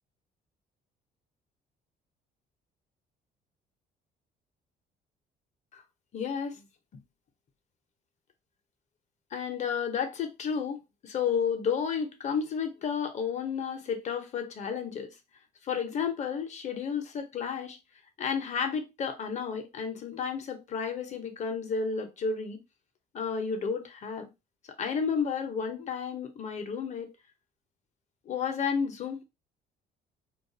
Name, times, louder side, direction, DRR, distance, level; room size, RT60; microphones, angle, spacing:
voice 1, 6.1-6.6 9.3-15.1 15.6-17.8 18.2-22.6 23.1-24.3 24.8-27.1 28.3-29.2, left 6 dB, 45° left, 0.7 m, -32 dB
2.3 x 2.2 x 2.6 m
cardioid pair, 110°, 17 cm